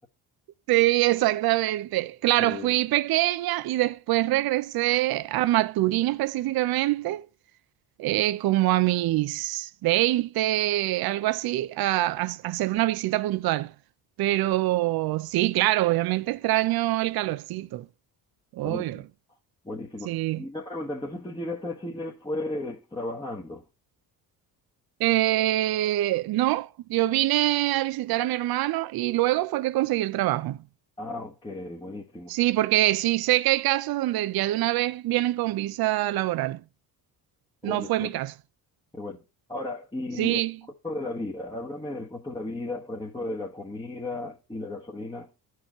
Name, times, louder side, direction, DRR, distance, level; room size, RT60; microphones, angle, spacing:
voice 1, 0.7-7.2 8.0-13.7 14.2-17.9 18.5-19.0 20.1-20.4 25.0-30.6 32.3-36.6 37.6-38.3 40.2-40.6, right 16 dB, 60° right, 0.6 m, -24 dB
voice 2, 2.4-2.7 18.6-19.1 19.6-23.6 31.0-32.4 37.6-38.1 38.9-39.2 39.5-40.4 40.8-45.3, left 2 dB, 10° left, 1.2 m, -35 dB
13.0 x 4.7 x 2.9 m
supercardioid pair, 65°, 43 cm